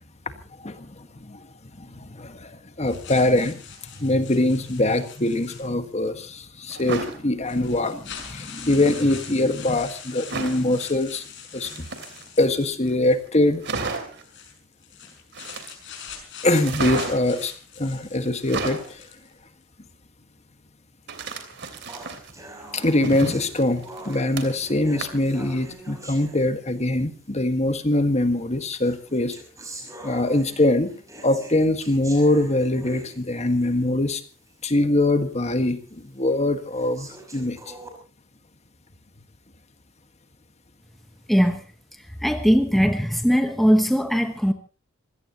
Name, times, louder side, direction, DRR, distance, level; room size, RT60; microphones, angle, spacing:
voice 1, 0.6-1.5 1.8-3.6 4.0-11.2 11.5-11.9 12.4-13.6 16.4-19.0 22.7-29.4 30.0-30.9 31.2-34.2 34.6-37.7, left 1 dB, 30° left, 1.6 m, -23 dB
sound 1, 2.9-6.1 6.9-7.0 7.4-13.2 14.2-19.3, left 7 dB, 60° left, 5.7 m, -42 dB
sound 2, 6.7-7.2 8.7-9.2 10.3-10.7 11.5-12.5 12.9-13.0 13.3-13.4 13.6-14.2 15.3-16.0 16.6-17.4 18.3-18.9 21.1-22.3 22.7-24.7 25.0-25.3 25.7-25.8, right 4 dB, 55° right, 3.1 m, -32 dB
sound 3, 21.9-27.0 27.9-28.0 28.8-34.0 34.5-34.6 35.1-35.2 35.9-36.0 36.7-37.9, right 2 dB, 15° right, 5.7 m, -44 dB
voice 2, 41.3-41.6 42.2-44.5, equal, ahead, 1.2 m, -20 dB
26.5 x 17.0 x 3.0 m
head